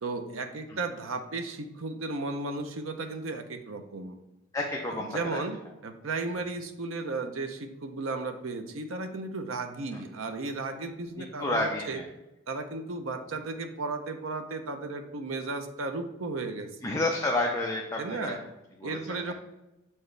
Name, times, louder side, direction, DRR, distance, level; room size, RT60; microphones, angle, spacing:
voice 1, 0.0-4.2 4.9-5.6 5.8-12.0 12.5-16.7 18.0-18.4 18.8-19.3, right 3 dB, 90° right, 6 dB, 0.7 m, -34 dB
voice 2, 4.5-5.4 9.9-10.0 11.4-12.1 16.8-18.3 18.8-19.3, left 2 dB, 15° left, 0 dB, 0.6 m, -30 dB
7.0 x 4.6 x 3.2 m, 0.97 s
head